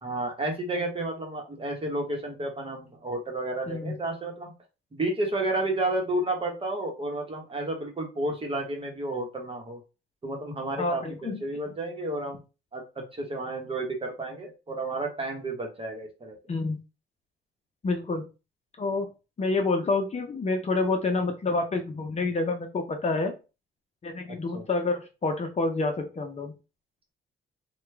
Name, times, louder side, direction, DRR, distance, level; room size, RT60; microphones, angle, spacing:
voice 1, 0.0-4.5 4.9-9.8 10.2-12.4 12.7-16.4 24.3-24.7, right 2 dB, 25° right, 2 dB, 1.2 m, -31 dB
voice 2, 3.7-4.0 10.8-11.4 16.5-16.8 17.8-18.3 18.8-19.1 19.4-23.3 24.0-26.5, left 3 dB, 35° left, 4 dB, 0.7 m, -28 dB
3.0 x 2.3 x 3.3 m, 0.29 s
cardioid pair, 90°, 20 cm